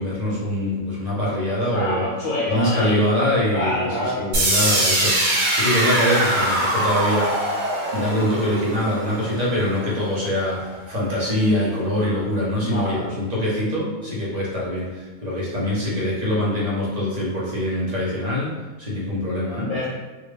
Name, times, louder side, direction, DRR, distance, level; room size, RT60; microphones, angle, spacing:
voice 1, 0.0-2.0 2.4-7.4 7.9-18.5 18.8-19.7, left 1 dB, 30° right, -7 dB, 1.0 m, -24 dB
voice 2, 1.7-3.1 3.5-4.3 12.5-13.1 19.7-19.9, left 1 dB, 80° left, -8 dB, 1.2 m, -26 dB
sound 1, 4.3-10.3, right 1 dB, 80° right, 1.3 m, -22 dB
3.6 x 2.6 x 3.2 m, 1.2 s
omnidirectional pair, 1.4 m